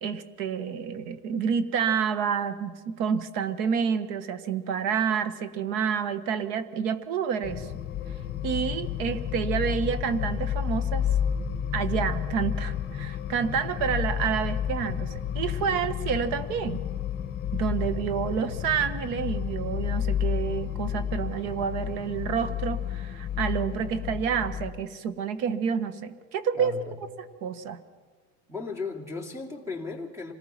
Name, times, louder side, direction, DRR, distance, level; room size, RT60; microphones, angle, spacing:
voice 1, 0.0-7.7 8.4-11.0 11.7-16.8 17.5-26.7 27.4-27.8, right 7 dB, 65° right, 12 dB, 1.5 m, -29 dB
sound 1, 7.4-24.7, left 9 dB, 30° left, 1.5 m, -31 dB
voice 2, 26.5-27.0 28.5-30.3, left 4 dB, 10° right, 4 dB, 2.7 m, -36 dB
26.0 x 19.0 x 5.9 m, 1.5 s
cardioid pair, 150°, 31 cm